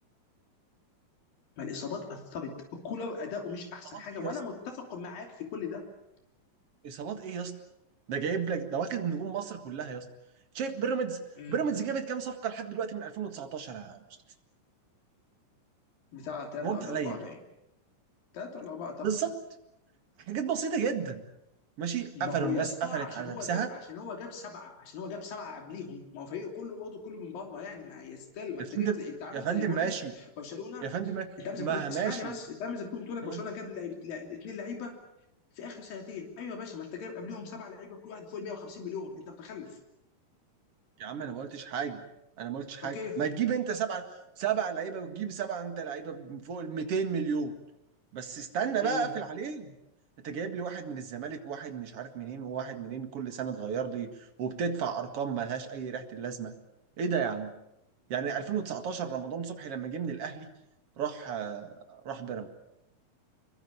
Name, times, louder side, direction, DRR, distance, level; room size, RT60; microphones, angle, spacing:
voice 1, 1.6-5.9 11.4-11.6 16.1-17.4 18.3-19.1 22.1-29.9 30.4-31.0 31.4-35.0 35.6-39.8 42.8-43.2 48.8-49.1, left 5 dB, 85° left, 3 dB, 4.8 m, -39 dB
voice 2, 6.8-7.6 8.1-10.1 10.5-14.0 16.6-17.2 19.0-19.3 20.3-21.2 21.8-23.7 28.8-29.0 29.3-30.1 30.8-32.4 33.2-33.4 41.0-42.0 42.4-44.0 44.4-47.5 48.1-49.7 50.2-56.5 57.0-57.5 58.1-60.5 61.0-62.5, right 7 dB, 50° right, 6 dB, 2.5 m, -33 dB
25.5 x 22.5 x 7.1 m, 0.83 s
omnidirectional pair, 4.0 m